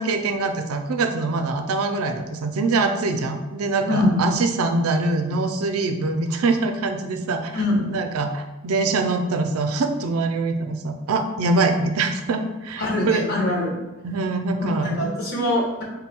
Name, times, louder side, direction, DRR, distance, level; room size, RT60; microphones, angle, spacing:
voice 1, 0.0-7.6 7.9-13.3 14.0-15.1, right 3 dB, 85° right, 6 dB, 0.4 m, -24 dB
voice 2, 3.9-4.3 7.5-8.0 12.8-13.8 14.6-15.8, left 1 dB, 45° left, -5 dB, 1.2 m, -23 dB
3.8 x 2.2 x 4.3 m, 1.1 s
head